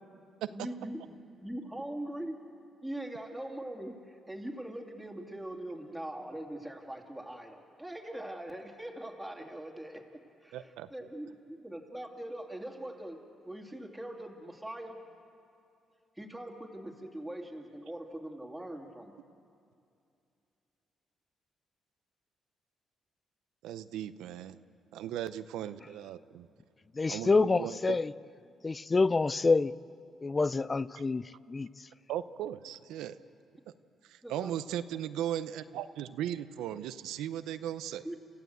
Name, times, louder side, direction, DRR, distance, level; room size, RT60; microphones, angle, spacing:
voice 1, 0.5-1.0 1.4-2.4 2.8-10.0 10.4-13.2 13.4-15.0 16.2-19.1 34.2-34.5 38.0-38.2, right 1 dB, 5° right, 0 dB, 2.7 m, -42 dB
voice 2, 10.5-10.9 23.6-24.6 24.9-26.5 27.1-28.0 32.1-33.2 34.0-38.1, right 11 dB, 90° right, 13 dB, 0.6 m, -37 dB
voice 3, 26.9-28.1 28.6-29.7 30.2-31.7, left 3 dB, 25° left, 19 dB, 0.4 m, -27 dB
29.5 x 15.0 x 8.0 m, 2.5 s
cardioid pair, 90°, 0 cm